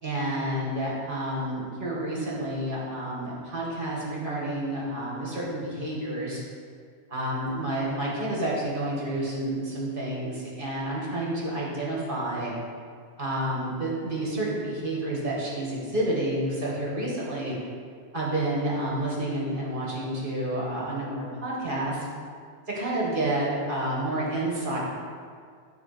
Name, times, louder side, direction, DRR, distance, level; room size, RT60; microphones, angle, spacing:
voice 1, 0.0-6.4 7.1-12.5 13.2-17.5 18.1-22.1 22.7-24.8, right 1 dB, 55° right, -5 dB, 1.9 m, -29 dB
8.3 x 4.1 x 5.9 m, 2.1 s
omnidirectional pair, 1.1 m